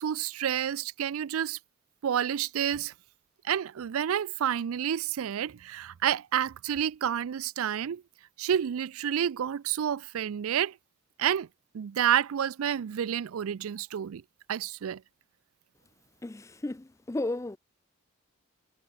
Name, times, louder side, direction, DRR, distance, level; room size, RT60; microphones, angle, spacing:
voice 1, 0.0-1.6 2.0-2.9 3.4-8.0 8.4-10.8 11.2-11.5 11.7-14.2 14.5-15.0, right 9 dB, 85° right, 0.4 m, -29 dB
voice 2, 16.2-17.6, left 2 dB, 15° left, 0.3 m, -34 dB
head